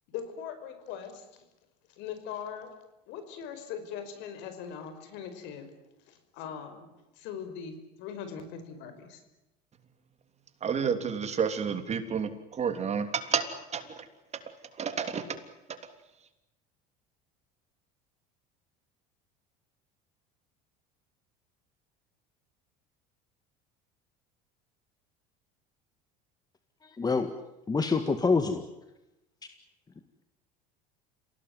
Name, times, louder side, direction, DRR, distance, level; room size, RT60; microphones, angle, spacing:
voice 1, 0.1-1.3 2.0-2.7 3.1-5.7 6.1-9.2, left 7 dB, 70° left, 9 dB, 5.2 m, -41 dB
voice 2, 10.6-13.4 13.7-14.0 14.8-15.2, right 6 dB, 35° right, 8 dB, 3.3 m, -30 dB
voice 3, 27.0-27.3 27.7-28.6, left 4 dB, 20° left, 8 dB, 1.9 m, -25 dB
27.5 x 18.0 x 9.5 m, 0.95 s
supercardioid pair, 100°, 20 cm